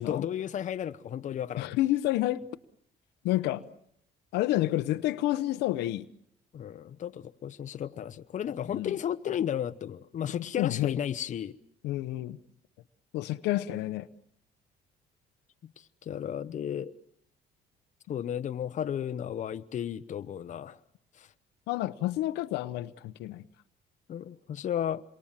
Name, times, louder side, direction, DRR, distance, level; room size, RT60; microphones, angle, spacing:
voice 1, 0.1-1.7 6.5-11.6 16.1-16.9 18.1-20.8 21.2-21.3 24.1-25.0, left 9 dB, 45° left, 1.0 m, -33 dB
voice 2, 1.6-2.4 3.2-3.6 4.3-6.1 8.7-8.9 10.6-11.0 11.8-12.4 13.1-14.1 21.7-23.4, left 15 dB, 90° left, 0.9 m, -29 dB
27.5 x 23.0 x 7.5 m
cardioid pair, 110°, 17 cm